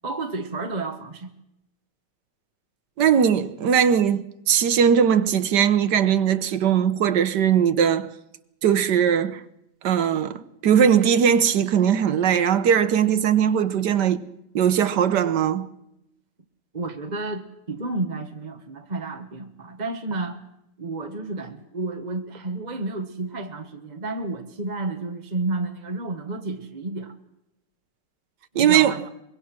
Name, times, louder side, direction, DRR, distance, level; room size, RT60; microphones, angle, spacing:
voice 1, 0.0-1.3 16.7-20.4 20.8-27.1 28.5-29.1, right 3 dB, 25° right, 1.3 m, -31 dB
voice 2, 3.0-8.1 8.6-9.4 9.8-14.2 14.5-15.7 28.5-28.9, right 8 dB, 70° right, 1.6 m, -20 dB
24.5 x 22.5 x 6.2 m
omnidirectional pair, 1.9 m